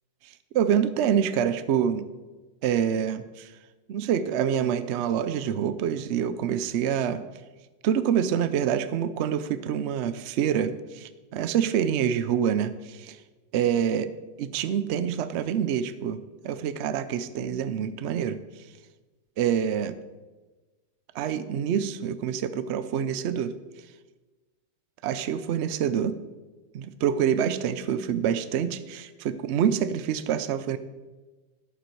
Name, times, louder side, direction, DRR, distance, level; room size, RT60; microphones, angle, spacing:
voice 1, 0.5-2.0 2.6-3.5 3.9-7.2 7.8-13.2 13.5-14.1 14.4-16.2 16.4-18.4 19.4-20.0 21.1-23.5 25.0-26.2 26.7-30.8, right 8 dB, 90° right, 12 dB, 0.6 m, -26 dB
11.0 x 8.4 x 4.6 m, 1.2 s
omnidirectional pair, 1.8 m